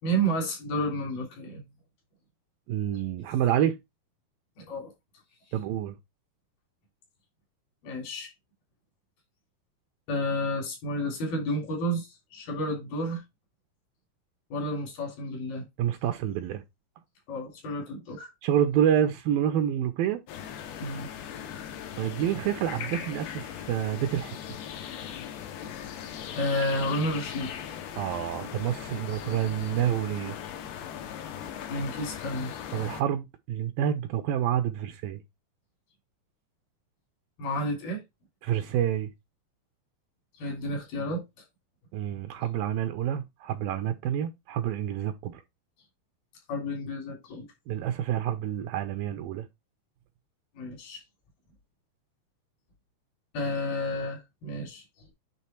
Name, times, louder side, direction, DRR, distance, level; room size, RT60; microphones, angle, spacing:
voice 1, 0.0-1.6 4.6-4.9 7.8-8.3 10.1-13.2 14.5-15.7 17.3-18.3 20.8-21.1 26.4-27.5 31.7-32.5 37.4-38.0 40.3-41.2 46.5-47.5 50.6-51.0 53.3-54.8, equal, 70° left, 5.1 m, -31 dB
voice 2, 2.7-3.8 5.5-6.0 15.8-16.6 18.4-20.2 22.0-24.4 28.0-30.4 32.7-35.2 38.4-39.1 41.9-45.4 47.7-49.5, right 10 dB, 80° right, 2.2 m, -28 dB
sound 1, 20.3-33.0, left 9 dB, 90° left, 3.1 m, -39 dB
9.4 x 3.6 x 4.4 m
omnidirectional pair, 4.5 m